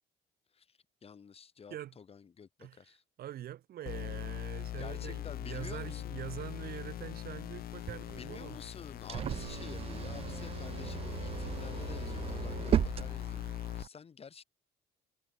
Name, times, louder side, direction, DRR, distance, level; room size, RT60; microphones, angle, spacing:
voice 1, 0.5-3.0 4.8-6.1 8.1-14.4, left 6 dB, 35° left, 4.9 m, -50 dB
voice 2, 3.2-8.6, right 12 dB, 65° right, 5.1 m, -44 dB
sound 1, 3.9-13.8, left 13 dB, 60° left, 1.3 m, -41 dB
sound 2, 7.6-13.9, right 9 dB, 35° right, 0.4 m, -36 dB
cardioid pair, 110°, 17 cm